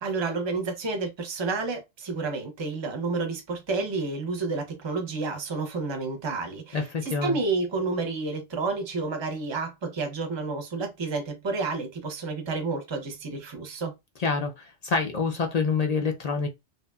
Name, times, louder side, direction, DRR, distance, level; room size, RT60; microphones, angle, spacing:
voice 1, 0.0-13.9, right 3 dB, 30° right, 0.6 m, -30 dB
voice 2, 6.7-7.4 14.2-16.5, left 4 dB, 50° left, 0.5 m, -27 dB
2.8 x 2.5 x 2.3 m
omnidirectional pair, 1.1 m